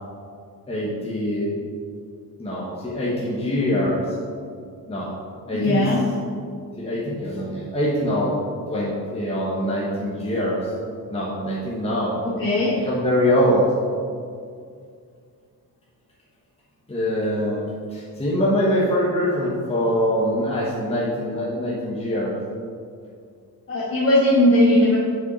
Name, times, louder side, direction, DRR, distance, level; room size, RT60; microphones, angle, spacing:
voice 1, 0.7-1.5 2.4-4.1 4.9-5.1 5.5-5.9 6.8-8.3 8.7-10.7 11.1-12.2 12.7-13.6 16.9-22.3, equal, 15° left, -7 dB, 1.2 m, -23 dB
voice 2, 5.5-6.0 12.2-12.7 23.7-25.0, left 1 dB, 35° left, -6 dB, 1.3 m, -18 dB
7.5 x 5.8 x 4.1 m, 2.2 s
wide cardioid pair, 150°, 36 cm